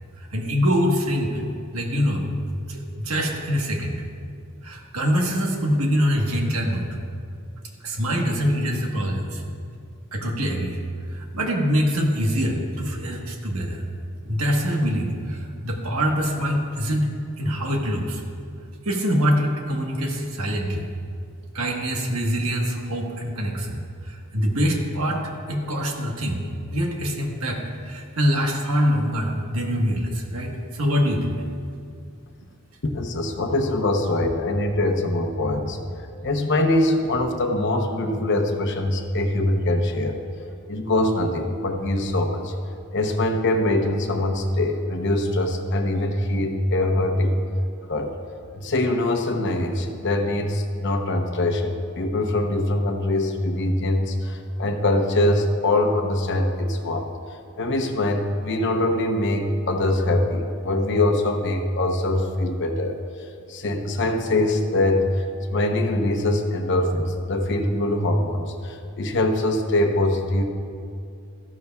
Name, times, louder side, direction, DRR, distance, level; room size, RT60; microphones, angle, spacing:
voice 1, 0.2-1.4 1.7-4.0 4.6-6.9 7.8-9.4 10.1-10.8 11.1-13.8 14.2-17.1 17.4-18.2 18.8-20.9 21.5-25.2 25.5-26.4 26.7-31.4, equal, 85° right, 1 dB, 1.3 m, -24 dB
voice 2, 32.9-35.8 36.2-40.2 40.7-42.5 42.9-47.4 47.9-48.1 48.6-57.1 57.6-63.0 63.5-65.1 65.5-70.4, left 1 dB, 55° left, 4 dB, 0.9 m, -23 dB
14.0 x 12.0 x 2.3 m, 2.3 s
head